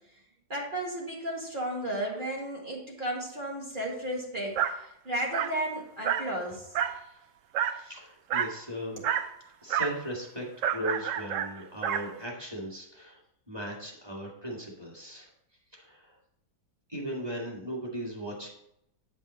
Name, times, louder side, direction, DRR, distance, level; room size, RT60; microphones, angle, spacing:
voice 1, 0.5-6.7 9.0-9.1, right 1 dB, 30° right, -2 dB, 1.7 m, -34 dB
Dog, 4.6-4.8 5.3-5.6 6.0-6.3 6.7-7.0 7.5-7.8 8.3-8.6 9.0-9.3 9.7-10.0 10.6-12.1, right 9 dB, 85° right, 0.7 m, -29 dB
voice 2, 7.7-9.0 9.6-13.2 13.5-15.3 15.7-16.2 16.9-18.5, equal, 15° right, -4 dB, 1.9 m, -38 dB
9.3 x 5.5 x 4.0 m, 0.79 s
omnidirectional pair, 1.9 m